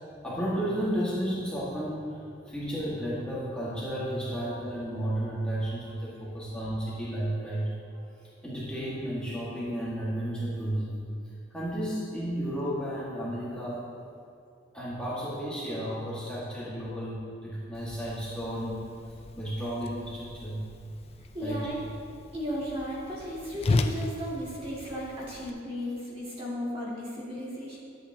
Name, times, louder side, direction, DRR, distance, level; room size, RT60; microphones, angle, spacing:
voice 1, 0.2-7.7 8.4-11.0 11.5-13.9 14.7-18.8 19.3-20.6 21.4-21.6, equal, 5° left, -10 dB, 1.7 m, -33 dB
Whoosh swoosh swish, 17.7-25.5, left 2 dB, 35° left, 0.4 m, -35 dB
voice 2, 21.3-21.8 22.3-27.8, equal, 30° right, -7 dB, 2.2 m, -35 dB
11.5 x 8.2 x 2.8 m, 2.4 s
head